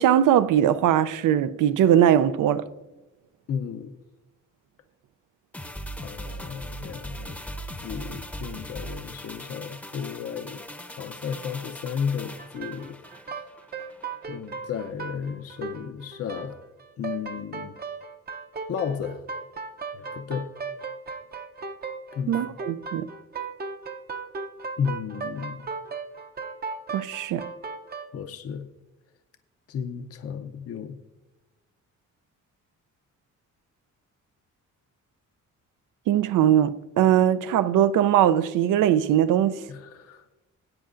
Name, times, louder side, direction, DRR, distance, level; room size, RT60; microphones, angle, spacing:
voice 1, 0.0-2.7 22.3-23.1 26.9-27.4 36.1-39.6, right 10 dB, 80° right, 0.5 m, -20 dB
voice 2, 3.5-3.9 6.0-7.4 7.8-10.6 11.0-13.0 14.3-16.6 17.0-17.8 18.7-19.2 19.9-20.5 22.1-22.4 24.8-25.7 28.1-28.7 29.7-31.0 39.7-40.2, left 7 dB, 50° left, 0.6 m, -33 dB
sound 1, 5.5-14.1 14.4-14.5, equal, 5° left, 0.7 m, -39 dB
sound 2, 12.4-28.1, right 4 dB, 30° right, 0.7 m, -36 dB
17.0 x 8.7 x 2.5 m
cardioid pair, 125°, 31 cm